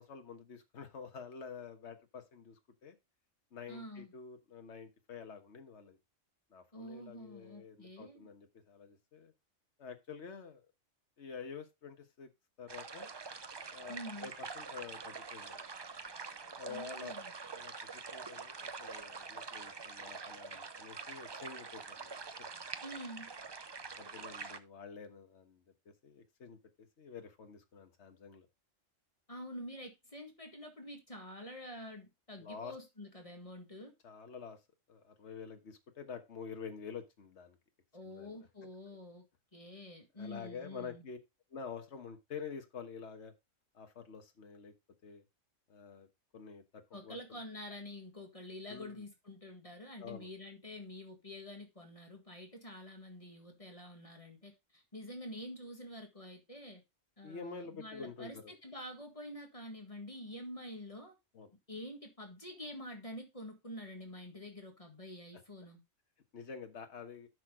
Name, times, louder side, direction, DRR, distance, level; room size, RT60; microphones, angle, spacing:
voice 1, 0.0-3.0 3.5-6.0 6.5-9.3 9.8-10.6 11.2-12.3 12.6-13.1 13.7-15.6 16.4-17.1 17.5-22.2 23.9-28.5 32.4-32.7 34.0-34.6 34.9-37.6 38.0-38.5 40.2-41.2 41.5-43.3 43.7-44.7 45.0-45.2 45.7-46.1 46.3-47.4 48.7-49.0 50.0-50.3 57.2-58.5 61.3-61.5 66.3-67.3, left 6 dB, 65° left, 1.6 m, -48 dB
voice 2, 3.7-4.1 6.7-8.3 13.9-14.3 16.7-17.3 22.8-23.3 29.3-33.9 37.9-39.2 39.5-41.1 46.9-56.8 57.2-61.1 61.7-65.8, left 1 dB, 25° left, 1.9 m, -47 dB
sound 1, 12.7-24.6, right 4 dB, 35° right, 0.4 m, -45 dB
9.6 x 6.2 x 3.7 m
omnidirectional pair, 1.3 m